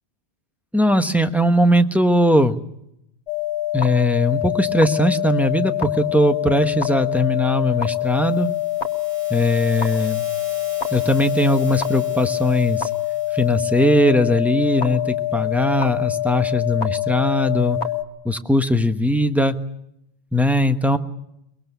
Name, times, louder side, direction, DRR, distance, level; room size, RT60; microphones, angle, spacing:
voice 1, 0.7-2.6 3.7-8.5 9.3-10.2 10.9-12.9 13.3-17.8 18.2-19.5 20.3-21.0, left 1 dB, ahead, 6 dB, 1.2 m, -19 dB
sound 1, 3.3-18.0, left 14 dB, 85° left, 1.5 m, -25 dB
sound 2, 7.8-14.0, right 1 dB, 55° right, 5.3 m, -43 dB
23.5 x 23.0 x 6.9 m, 0.79 s
omnidirectional pair, 1.1 m